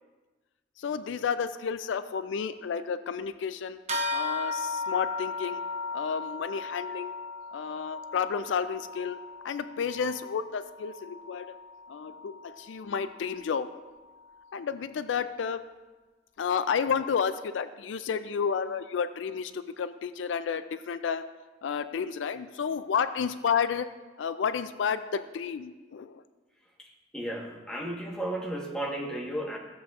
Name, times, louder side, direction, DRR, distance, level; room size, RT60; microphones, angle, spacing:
voice 1, 0.8-3.8 4.1-5.6 5.9-7.1 7.5-9.2 9.4-11.6 11.9-13.7 14.5-15.6 16.4-21.3 21.6-23.9 24.2-26.2, left 6 dB, 90° left, 12 dB, 0.4 m, -31 dB
sound 1, 3.9-13.7, left 3 dB, 40° right, 0.8 m, -37 dB
voice 2, 27.1-29.6, right 1 dB, 5° left, -2 dB, 1.2 m, -34 dB
14.5 x 7.4 x 2.4 m, 1.2 s
head